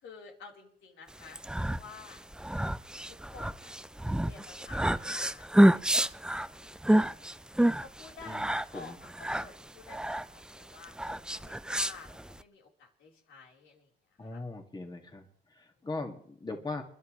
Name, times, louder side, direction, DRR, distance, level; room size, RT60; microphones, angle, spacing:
voice 1, 0.0-1.4 1.7-2.2 3.1-3.8 4.2-5.4 5.7-6.1 6.9-7.4 7.8-13.9 14.3-14.4 15.8-15.9, left 4 dB, 75° left, -1 dB, 4.4 m, -51 dB
sound 1, 1.2-12.4, right 1 dB, 5° right, 0.5 m, -28 dB
voice 2, 14.2-15.3 15.5-16.8, left 3 dB, 20° left, 3 dB, 2.4 m, -39 dB
30.0 x 11.5 x 3.3 m, 0.62 s
cardioid pair, 90°, 20 cm